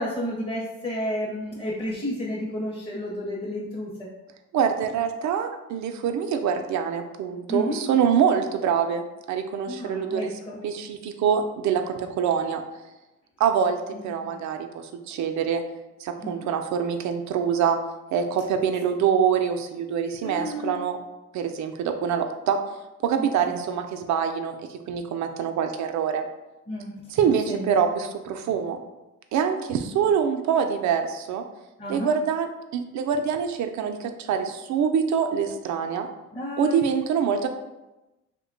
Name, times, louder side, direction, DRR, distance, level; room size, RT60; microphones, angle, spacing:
voice 1, 0.0-4.1 7.5-7.8 9.7-10.6 13.9-14.4 16.2-16.5 20.2-20.8 23.2-23.6 26.7-26.9 27.5-27.7 31.8-32.1 36.3-36.9, left 1 dB, 20° left, -4 dB, 0.7 m, -31 dB
voice 2, 4.5-11.8 12.2-12.6 13.4-13.8 14.0-15.6 16.0-17.8 18.1-21.0 21.3-22.6 23.0-26.2 27.1-28.8 29.3-31.4 31.9-36.1 36.6-37.5, right 7 dB, 70° right, 6 dB, 0.5 m, -25 dB
2.8 x 2.2 x 3.8 m, 1.0 s
cardioid pair, 90°, 30 cm